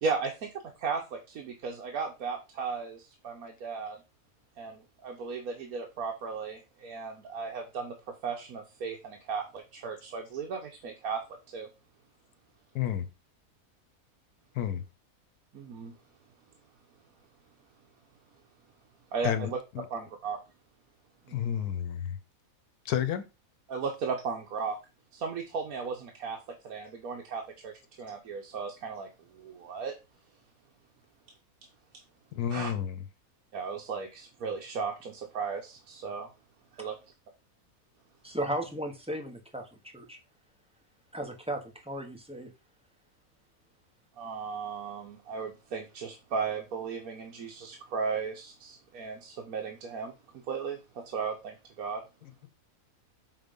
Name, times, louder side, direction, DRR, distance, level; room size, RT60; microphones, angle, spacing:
voice 1, 0.0-0.5 0.8-4.0 4.6-8.0 8.2-11.2 11.5-11.7 15.5-15.9 19.1-19.6 19.9-20.4 21.2-21.6 23.7-24.8 25.1-26.4 26.6-29.9 32.5-32.7 33.5-36.3 36.7-37.0 44.2-50.1 50.5-52.0, right 5 dB, 70° right, 1.4 m, -36 dB
voice 2, 19.2-19.8 21.3-22.2 22.8-23.3 32.3-33.0, left 10 dB, 85° left, 1.3 m, -31 dB
voice 3, 38.2-40.2 41.1-42.5, right 1 dB, 5° right, 0.9 m, -36 dB
5.6 x 3.9 x 5.2 m
omnidirectional pair, 1.6 m